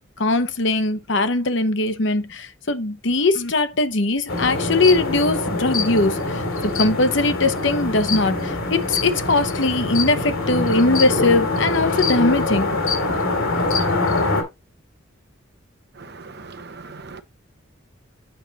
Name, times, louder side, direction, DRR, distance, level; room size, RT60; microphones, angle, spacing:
voice 1, 0.2-12.7, left 2 dB, 60° left, 1.0 m, -20 dB
sound 1, 4.3-14.4, left 3 dB, 90° left, 3.1 m, -24 dB
voice 2, 16.0-17.2, right 4 dB, 55° right, 0.9 m, -39 dB
8.0 x 5.4 x 4.0 m
head